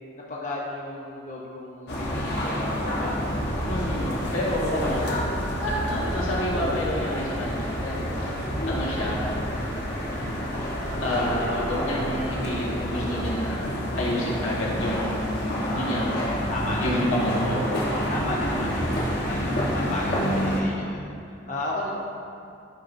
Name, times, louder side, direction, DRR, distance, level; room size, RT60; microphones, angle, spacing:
voice 1, 0.2-3.2 4.4-4.8 8.1-8.5 15.5-17.4 18.1-22.0, left 1 dB, 40° left, -4 dB, 0.8 m, -35 dB
sound 1, 1.9-20.6, equal, 55° left, 1.2 m, -28 dB
voice 2, 3.7-5.2 5.6-9.3 11.0-13.6 14.0-16.2 16.8-17.8, left 1 dB, 85° left, -5 dB, 1.7 m, -29 dB
11.5 x 5.4 x 2.6 m, 2.5 s
head